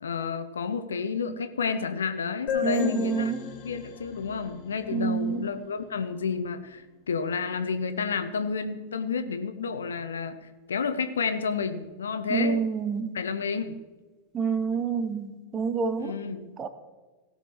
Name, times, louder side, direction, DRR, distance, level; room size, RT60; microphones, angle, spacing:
voice 1, 0.0-3.3 3.6-12.6 13.1-13.8 16.0-16.5, left 5 dB, 70° left, 10 dB, 0.8 m, -30 dB
sound 1, 2.5-6.0, left 8 dB, 40° left, 1.8 m, -36 dB
voice 2, 2.6-3.4 4.9-5.5 12.3-13.2 14.3-16.2 16.6-16.7, right 5 dB, 20° right, 11 dB, 0.9 m, -28 dB
17.5 x 5.9 x 4.5 m, 1.3 s
figure-of-eight pair, 90°, 0 cm